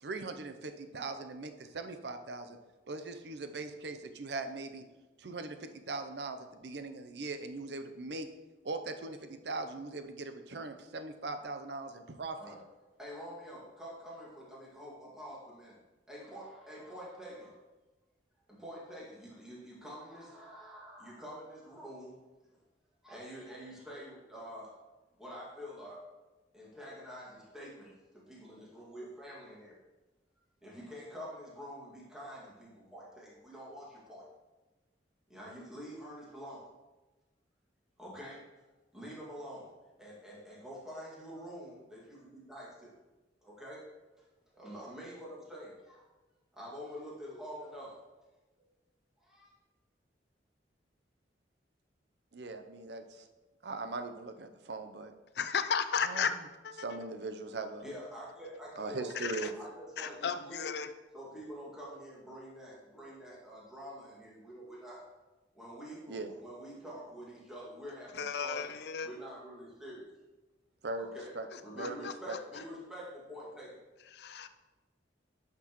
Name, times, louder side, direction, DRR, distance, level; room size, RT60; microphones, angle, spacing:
voice 1, 0.0-2.6 2.9-4.8 5.2-8.3 8.6-12.5 52.3-53.3 53.6-55.1 56.0-56.4 56.8-57.8 58.8-59.5 66.1-66.3 70.8-72.4, right 3 dB, 70° right, 8 dB, 0.6 m, -40 dB
voice 2, 13.0-15.8 16.1-17.6 18.5-22.1 23.0-24.7 25.2-26.0 26.5-29.8 30.6-34.3 35.3-36.7 38.0-38.6 38.9-39.7 40.0-42.9 43.4-43.8 44.5-46.1 46.5-48.2 49.2-49.5 57.8-60.7 61.1-65.0 65.5-68.7 69.0-70.1 71.0-71.3 71.6-73.8, equal, 5° right, -6 dB, 2.1 m, -47 dB
voice 3, 55.4-56.3 56.6-56.7 59.2-59.5 60.0-60.9 68.1-69.1 71.8-72.1 74.1-74.5, left 6 dB, 65° left, 10 dB, 0.5 m, -34 dB
10.0 x 6.0 x 3.0 m, 1.2 s
head